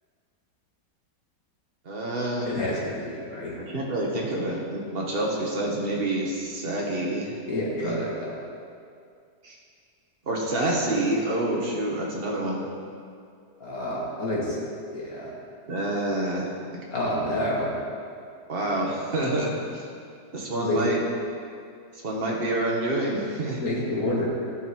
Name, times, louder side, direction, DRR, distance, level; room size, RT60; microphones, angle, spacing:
voice 1, 1.9-2.5 3.6-7.3 7.8-8.0 9.4-9.6 10.3-12.7 15.7-16.5 18.5-19.8 20.3-21.0 22.0-23.6, right 1 dB, 35° right, -3 dB, 1.8 m, -27 dB
voice 2, 2.4-3.6 7.5-8.3 13.6-14.6 14.9-15.3 16.9-17.7 20.6-20.8 23.6-24.3, left 1 dB, 50° left, -6 dB, 2.8 m, -28 dB
16.5 x 5.8 x 4.6 m, 2.3 s
omnidirectional pair, 1.9 m